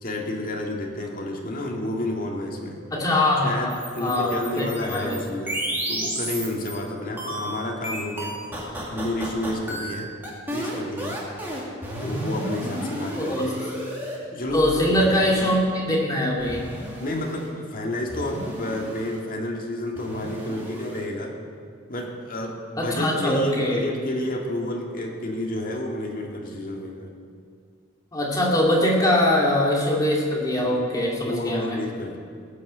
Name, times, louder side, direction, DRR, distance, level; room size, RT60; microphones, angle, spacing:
voice 1, 0.0-2.8 3.4-5.6 5.9-8.4 8.9-10.1 10.5-11.2 12.0-13.4 14.3-15.0 17.0-21.3 21.9-27.1 31.3-32.2, left 1 dB, 45° left, -1 dB, 2.0 m, -30 dB
voice 2, 2.9-5.2 13.1-13.5 14.5-16.8 22.8-23.8 28.1-31.8, left 1 dB, 20° left, -4 dB, 2.4 m, -22 dB
sound 1, 3.7-6.8 7.2-14.2 14.5-15.6 16.4-17.5 18.1-19.2 20.0-21.0, right 1 dB, 10° right, 2.4 m, -33 dB
19.0 x 6.5 x 8.0 m, 2.1 s
head